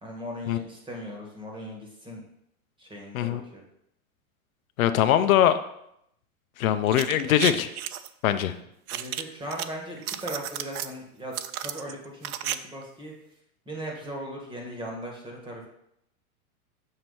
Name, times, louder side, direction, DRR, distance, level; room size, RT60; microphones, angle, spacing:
voice 1, 0.0-2.2 2.8-3.6 8.9-13.1 13.6-15.7, equal, 10° right, 0 dB, 1.4 m, -38 dB
voice 2, 4.8-5.6 6.6-7.7 8.2-8.5, left 11 dB, 70° left, 10 dB, 0.6 m, -22 dB
sound 1, 6.9-8.1 8.9-9.7 10.0-10.9 11.3-12.6 12.8-12.9, right 11 dB, 85° right, 0.6 m, -33 dB
6.5 x 3.0 x 5.5 m, 0.76 s
hypercardioid pair, 130°, 43 cm